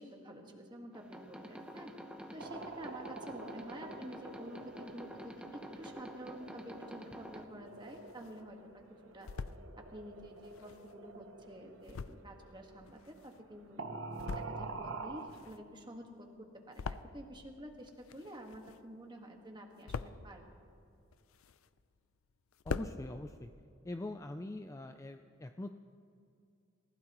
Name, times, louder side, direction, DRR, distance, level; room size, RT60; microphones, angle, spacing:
voice 1, 0.0-1.9 2.3-8.6 9.1-9.3 9.9-13.8 14.3-20.4, equal, 20° right, 2 dB, 1.6 m, -49 dB
sound 1, 0.9-7.4, equal, 5° right, 0.8 m, -49 dB
sound 2, 2.4-13.5 13.8-15.4, right 3 dB, 60° right, 1.1 m, -47 dB
sound 3, 7.4-8.4 8.9-9.6 10.3-13.6 14.0-14.8 15.1-17.5 17.8-19.0 19.4-20.4 20.9-21.9 22.2-22.3 22.5-23.0, left 5 dB, 75° left, 0.5 m, -43 dB
voice 2, 22.6-23.5 23.8-25.7, left 2 dB, 15° left, 7 dB, 0.3 m, -43 dB
27.5 x 16.0 x 3.0 m, 2.5 s
head